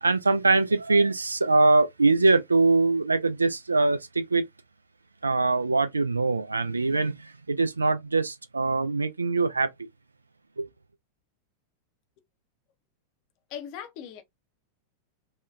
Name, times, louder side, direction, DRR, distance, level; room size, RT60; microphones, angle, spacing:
voice 1, 0.0-4.4 5.2-9.7 10.6-10.7, right 3 dB, 80° right, 0.3 m, -23 dB
voice 2, 13.5-14.2, left 9 dB, 45° left, 0.6 m, -39 dB
2.7 x 2.2 x 2.2 m
figure-of-eight pair, 90°, 0 cm